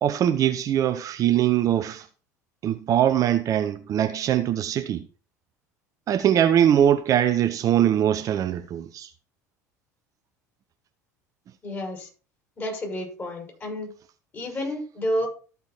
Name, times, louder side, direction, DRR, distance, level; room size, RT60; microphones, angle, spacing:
voice 1, 0.0-2.0 2.6-5.0 6.1-9.1, right 10 dB, 40° right, 0.8 m, -22 dB
voice 2, 11.6-12.1 12.6-13.9 14.3-15.3, left 1 dB, 25° left, 6.5 m, -30 dB
13.5 x 5.4 x 4.4 m
figure-of-eight pair, 65°, 9 cm